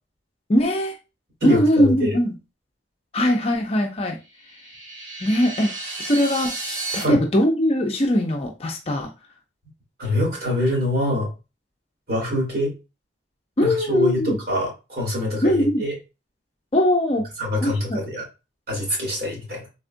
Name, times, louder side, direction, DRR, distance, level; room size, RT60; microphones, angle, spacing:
voice 1, 0.5-1.0 1.4-2.3 3.1-4.2 5.2-5.7 6.0-6.6 6.9-9.1 13.6-14.3 15.4-15.8 16.7-17.3 17.6-18.0, left 1 dB, 30° left, 2 dB, 0.5 m, -20 dB
voice 2, 1.4-2.2 7.0-7.2 10.0-11.3 12.1-12.7 13.6-15.9 17.4-18.2 18.7-19.7, left 1 dB, 55° right, -2 dB, 1.7 m, -24 dB
sound 1, 4.3-7.0, right 2 dB, 80° right, 1.6 m, -32 dB
3.6 x 2.3 x 2.5 m, 0.28 s
head